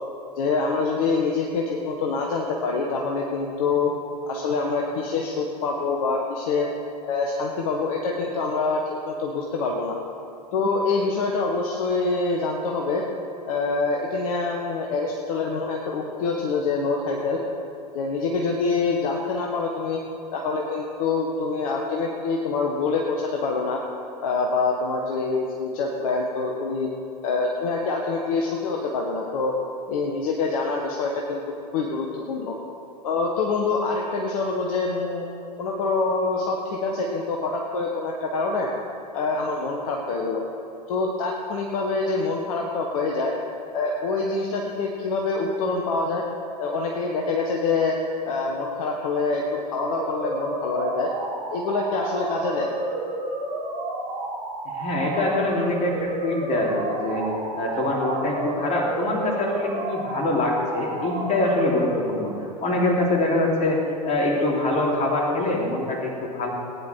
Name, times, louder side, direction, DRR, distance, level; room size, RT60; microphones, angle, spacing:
voice 1, 0.4-3.9 4.3-6.7 7.0-10.0 10.5-13.0 13.5-17.4 17.9-20.0 20.3-23.8 24.2-26.9 27.2-29.5 29.9-31.4 31.7-32.6 33.0-35.2 35.6-38.7 39.1-40.4 40.9-43.3 43.7-46.2 46.6-47.9 48.3-51.1 51.5-52.7, left 3 dB, 55° left, -1 dB, 1.5 m, -25 dB
sound 1, 50.0-62.0, right 1 dB, 40° right, 3.8 m, -31 dB
voice 2, 54.7-57.3 57.6-62.3 62.6-66.5, left 2 dB, 30° left, -2 dB, 3.7 m, -24 dB
18.0 x 9.9 x 4.7 m, 2.6 s
figure-of-eight pair, 80°, 21 cm